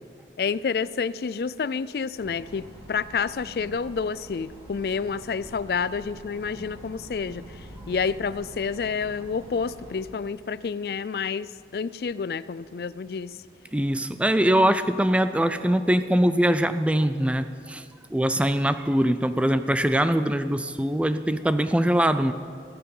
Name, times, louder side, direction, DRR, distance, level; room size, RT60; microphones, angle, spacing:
voice 1, 0.4-13.4, left 5 dB, 60° left, 18 dB, 0.4 m, -29 dB
sound 1, 2.2-10.1, right 1 dB, 35° right, 2.9 m, -45 dB
voice 2, 13.7-17.8 18.1-22.3, right 1 dB, 5° right, 11 dB, 0.4 m, -22 dB
15.5 x 12.5 x 5.5 m, 2.5 s
head